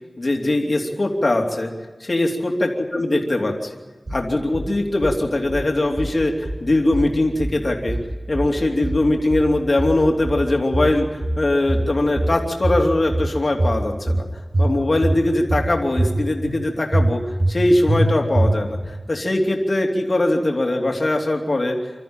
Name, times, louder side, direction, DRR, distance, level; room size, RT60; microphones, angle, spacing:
voice 1, 0.2-1.7 2.0-3.8 4.1-8.0 8.3-14.2 14.6-17.2 17.5-21.8, left 1 dB, 55° left, 2 dB, 2.9 m, -21 dB
sound 1, 4.1-4.7 5.0-5.7 6.0-6.7 6.9-7.6 7.9-8.6 8.8-9.5 9.8-10.5 10.7-11.4 11.7-12.4 12.6-13.3 13.6-14.2 14.5-15.2 15.5-16.1 16.4-16.6 16.9-17.6 17.9-18.0 18.4-18.9, right 1 dB, 60° right, 7.0 m, -22 dB
26.0 x 13.5 x 8.9 m, 1.3 s
wide cardioid pair, 65°, 0 cm